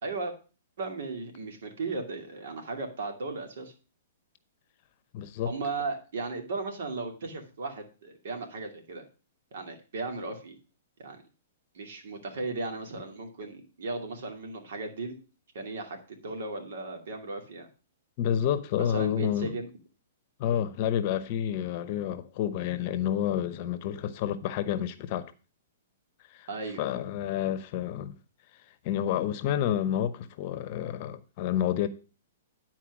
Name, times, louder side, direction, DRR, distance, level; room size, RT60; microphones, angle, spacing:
voice 1, 0.0-0.3 0.8-3.7 5.4-9.0 9.5-10.6 11.0-11.2 11.7-15.2 15.5-17.7 18.8-19.7 26.5-26.9, right 3 dB, 70° right, 2.4 m, -36 dB
voice 2, 5.1-5.5 18.2-19.6 20.4-25.3 26.4-26.5 26.8-28.1 28.8-31.9, left 10 dB, 40° left, 0.8 m, -29 dB
10.0 x 4.5 x 6.0 m
hypercardioid pair, 145°, 0 cm